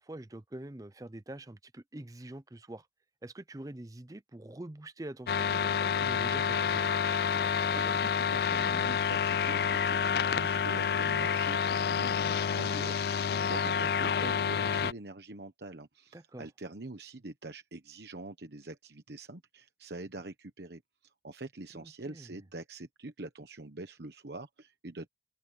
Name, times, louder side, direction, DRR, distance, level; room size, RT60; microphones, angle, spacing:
voice 1, 0.0-2.9 3.2-6.8 16.1-16.5 21.7-22.3, right 1 dB, 20° right, 0.5 m, -45 dB
sound 1, 5.3-14.9, left 7 dB, 55° left, 0.3 m, -29 dB
voice 2, 7.7-25.1, right 2 dB, 65° right, 1.1 m, -44 dB
head